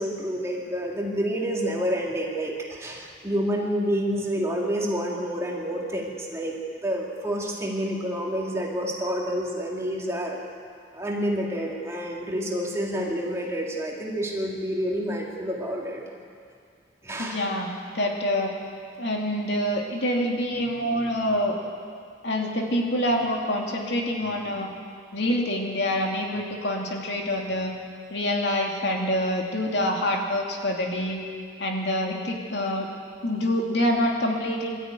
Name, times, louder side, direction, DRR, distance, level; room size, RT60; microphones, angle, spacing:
voice 1, 0.0-10.4 10.9-16.0 17.0-17.4, equal, 15° right, -2 dB, 2.5 m, -28 dB
voice 2, 17.2-17.7 17.9-18.5 19.0-21.6 22.2-24.7 25.1-27.7 28.1-31.2 31.6-32.9 33.2-34.8, left 1 dB, 60° left, 0 dB, 2.6 m, -26 dB
22.0 x 13.0 x 9.3 m, 2.3 s
head